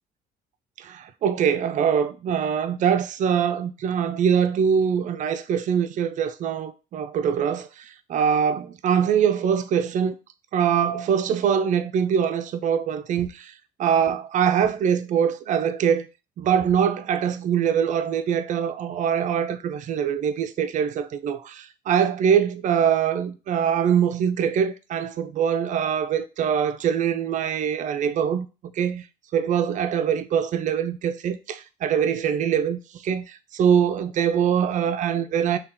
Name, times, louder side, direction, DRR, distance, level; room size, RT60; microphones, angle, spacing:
voice 1, 0.8-10.1 10.5-13.5 13.8-16.1 16.4-28.5 28.8-29.0 29.3-35.6, right 8 dB, 50° right, 0.4 m, -23 dB
2.8 x 2.2 x 3.6 m
cardioid pair, 110°, 17 cm